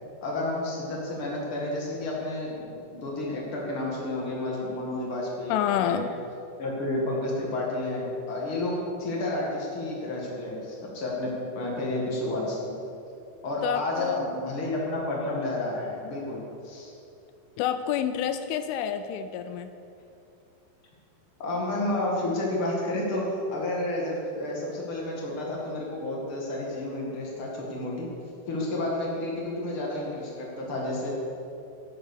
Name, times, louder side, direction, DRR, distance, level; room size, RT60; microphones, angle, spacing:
voice 1, 0.2-5.5 5.8-6.0 6.6-12.7 13.4-16.4 16.6-16.9 21.4-28.1 28.5-31.1, left 1 dB, 65° left, -3 dB, 1.3 m, -31 dB
voice 2, 5.5-6.1 13.6-14.3 17.6-19.7, left 9 dB, 85° left, 10 dB, 2.9 m, -28 dB
11.5 x 10.0 x 6.8 m, 2.7 s
omnidirectional pair, 5.7 m